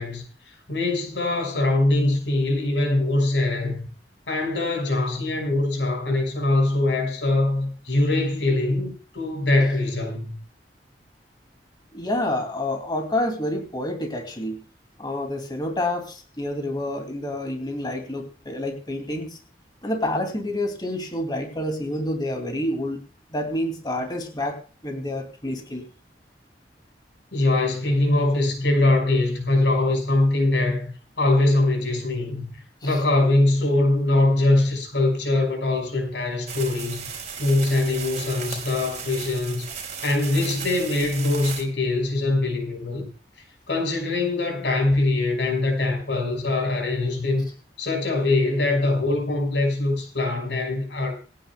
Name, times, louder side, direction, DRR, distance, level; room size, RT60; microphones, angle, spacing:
voice 1, 0.0-3.8 4.3-10.3 27.3-37.0 37.4-39.7 40.0-43.1 43.7-47.4 47.8-51.1, left 2 dB, 90° left, 5.6 m, -22 dB
voice 2, 11.9-14.6 15.0-19.4 19.8-23.0 23.3-24.6 24.8-25.8 32.8-33.0, left 1 dB, 25° left, 2.6 m, -28 dB
sound 1, 36.5-41.6, right 6 dB, 45° right, 4.7 m, -35 dB
27.0 x 10.0 x 2.3 m
head